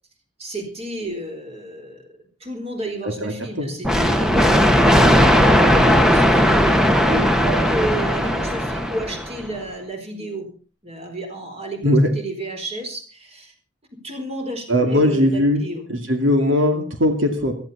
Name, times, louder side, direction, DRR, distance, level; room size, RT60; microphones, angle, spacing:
voice 1, 0.4-2.0 2.4-6.8 7.1-10.5 10.8-13.5 13.9-15.8, right 2 dB, 30° right, 4 dB, 4.2 m, -32 dB
voice 2, 3.0-3.7 11.8-12.1 14.7-15.6 15.9-17.5, left 1 dB, 80° right, 4 dB, 2.5 m, -19 dB
sound 1, 3.8-9.4, equal, 5° right, 1.2 m, -17 dB
17.5 x 14.5 x 4.2 m, 0.38 s
head